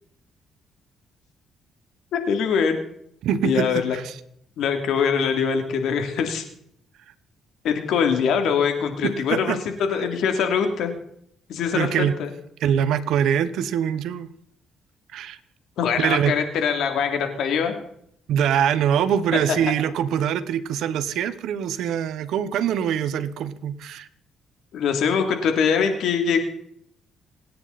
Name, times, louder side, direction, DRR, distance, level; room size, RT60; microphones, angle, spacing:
voice 1, 2.1-2.8 3.4-4.0 4.6-6.4 7.6-10.9 11.5-11.9 12.2-12.3 15.8-17.8 24.7-26.4, left 6 dB, 80° left, 5 dB, 3.0 m, -23 dB
voice 2, 3.2-4.2 9.0-9.6 11.7-12.1 12.6-14.3 15.1-15.4 16.0-16.3 18.3-24.1, right 9 dB, 80° right, 13 dB, 1.2 m, -23 dB
27.5 x 9.8 x 4.2 m, 0.70 s
cardioid pair, 90°, 0 cm